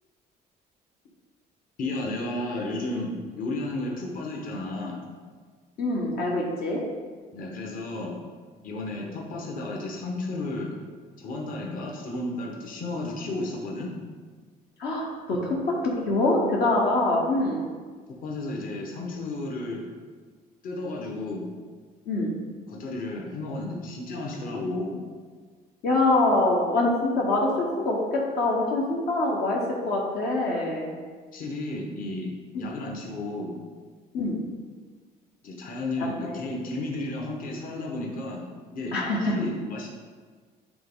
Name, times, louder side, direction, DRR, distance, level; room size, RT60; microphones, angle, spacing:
voice 1, 1.8-5.0 7.3-8.2 8.6-10.7 11.2-13.9 18.2-19.8 20.6-21.5 22.7-25.0 31.3-33.6 35.4-39.9, left 2 dB, 55° left, -1 dB, 1.2 m, -33 dB
voice 2, 5.8-6.8 14.8-17.7 22.1-22.3 25.8-29.6 29.9-30.9 32.5-32.7 34.1-34.4 36.1-36.4 38.9-39.3, left 2 dB, 70° left, -3 dB, 1.1 m, -24 dB
8.5 x 3.5 x 3.7 m, 1.5 s
cardioid pair, 110°, 17 cm